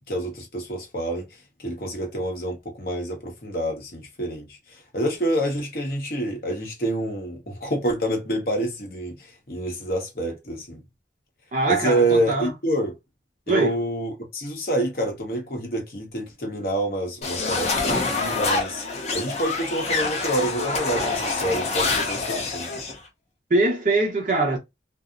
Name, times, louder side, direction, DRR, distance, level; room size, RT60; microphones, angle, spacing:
voice 1, 0.1-1.2 1.6-4.5 4.9-9.2 9.5-10.8 11.7-12.9 13.5-18.8 19.1-22.7, right 1 dB, 55° left, 0.9 m, -27 dB
voice 2, 11.5-12.5 13.5-13.8 23.5-24.6, right 2 dB, 45° right, 0.7 m, -22 dB
sound 1, 17.2-23.0, left 3 dB, 35° left, 0.5 m, -26 dB
2.6 x 2.0 x 2.4 m
head